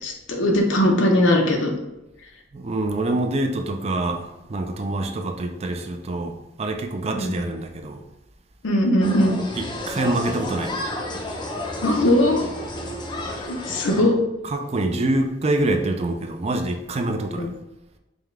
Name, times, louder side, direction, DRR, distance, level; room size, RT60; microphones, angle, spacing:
voice 1, 0.0-1.7 7.1-7.3 8.6-9.4 11.8-12.4 13.4-14.2 17.4-17.5, left 1 dB, 90° left, 1 dB, 0.8 m, -20 dB
voice 2, 2.5-8.0 9.6-10.9 14.0-14.1 14.4-17.5, right 2 dB, 35° right, 5 dB, 0.4 m, -26 dB
sound 1, 9.0-14.0, left 1 dB, 25° left, 0.5 m, -31 dB
5.3 x 2.3 x 3.2 m, 0.95 s
head